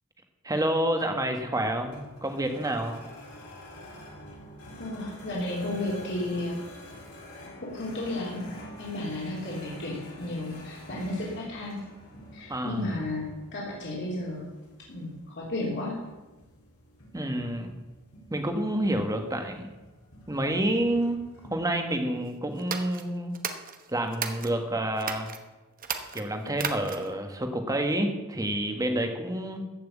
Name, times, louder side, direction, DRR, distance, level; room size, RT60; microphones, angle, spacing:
voice 1, 0.4-3.0 12.5-12.9 17.1-17.8 18.3-19.7 20.3-23.4 23.9-25.3 26.1-29.6, right 1 dB, 15° right, 5 dB, 1.5 m, -29 dB
sound 1, 1.6-21.5, left 1 dB, 75° left, 3.9 m, -48 dB
voice 2, 4.8-6.6 7.6-8.4 8.8-11.8 12.3-14.5 14.9-16.0, left 1 dB, 55° left, -5 dB, 3.2 m, -33 dB
sound 2, 22.6-24.5 25.0-25.4 25.8-27.2, right 6 dB, 40° right, 1.1 m, -35 dB
14.5 x 6.1 x 8.4 m, 1.1 s
head